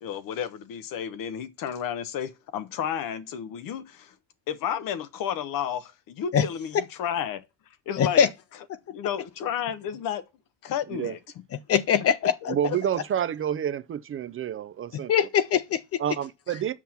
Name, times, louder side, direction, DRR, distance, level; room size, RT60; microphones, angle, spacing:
voice 1, 0.0-4.1 4.5-7.4 7.9-8.2 8.9-10.2 10.6-11.2 12.5-12.8, left 9 dB, 60° left, 1.1 m, -32 dB
voice 2, 8.0-8.3 11.7-12.3 15.1-16.0, left 8 dB, 40° left, 0.5 m, -22 dB
voice 3, 12.5-15.1 16.0-16.8, right 9 dB, 35° right, 0.5 m, -29 dB
7.3 x 5.7 x 5.9 m
supercardioid pair, 90°, 37 cm